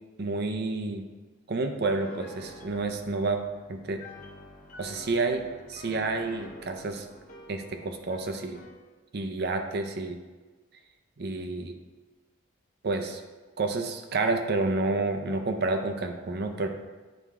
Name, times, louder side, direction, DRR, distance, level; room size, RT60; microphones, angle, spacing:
voice 1, 0.2-1.1 1.5-3.4 3.7-4.0 4.8-7.1 7.5-8.6 9.1-10.2 11.2-11.7 12.8-13.2 13.6-16.7, right 3 dB, 50° right, 6 dB, 0.6 m, -29 dB
Piano, 1.9-8.8, left 1 dB, 40° left, 0.6 m, -48 dB
9.2 x 3.5 x 3.6 m, 1.3 s
head